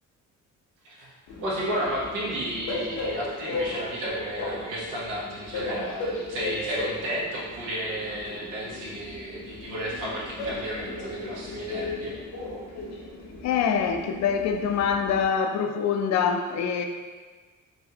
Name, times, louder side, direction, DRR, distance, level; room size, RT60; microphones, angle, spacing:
Train, 1.3-15.2, left 2 dB, 90° left, 0.8 m, -36 dB
voice 1, 1.4-12.1, right 1 dB, 90° right, -5 dB, 1.1 m, -32 dB
voice 2, 13.4-16.9, left 7 dB, 65° left, 5 dB, 0.4 m, -25 dB
4.0 x 2.6 x 2.8 m, 1.4 s
cardioid pair, 90°, 30 cm